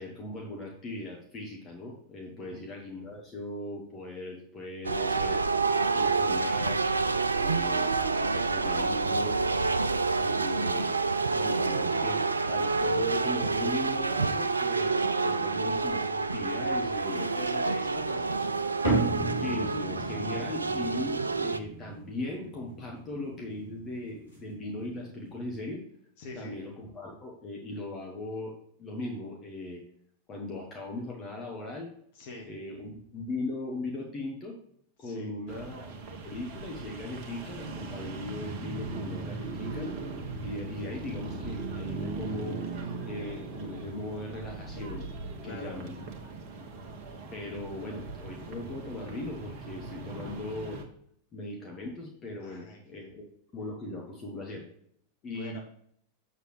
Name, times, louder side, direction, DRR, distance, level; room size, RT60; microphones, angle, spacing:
voice 1, 0.0-5.5 5.9-6.8 7.3-7.9 8.2-9.4 10.2-11.0 11.3-12.2 12.5-17.3 19.4-25.8 26.3-28.5 28.8-29.8 30.3-31.9 32.4-34.6 35.0-35.9 36.2-39.9 40.4-42.6 43.0-45.1 45.4-46.0 47.3-50.8 51.3-53.3 53.5-54.6 55.2-55.6, left 2 dB, 25° left, 0 dB, 1.5 m, -38 dB
sound 1, 4.8-21.6, right 4 dB, 80° right, 0.4 m, -28 dB
voice 2, 17.1-18.7 26.2-26.5 32.1-32.5 35.0-35.3 45.4-45.8 47.7-47.8 52.4-53.1 55.3-55.6, left 2 dB, 50° left, 1 dB, 1.6 m, -44 dB
sound 2, 18.8-25.6, right 2 dB, 80° left, 3.1 m, -35 dB
sound 3, 35.5-50.8, right 3 dB, 45° right, 1.2 m, -39 dB
7.3 x 6.7 x 3.3 m, 0.64 s
figure-of-eight pair, 90°, 0 cm